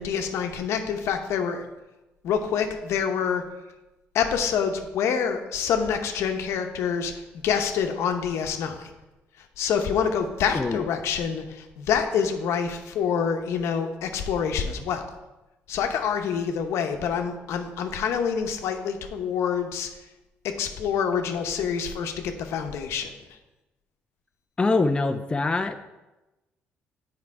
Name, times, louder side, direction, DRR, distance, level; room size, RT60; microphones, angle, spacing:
voice 1, 0.0-1.6 2.2-3.4 4.1-7.1 7.4-8.9 9.4-15.0 15.7-19.9 20.6-23.1, left 7 dB, 75° left, 5 dB, 0.8 m, -26 dB
voice 2, 24.6-25.8, left 3 dB, 20° left, 7 dB, 0.5 m, -24 dB
7.5 x 4.6 x 4.7 m, 1.0 s
cardioid pair, 85°, 5 cm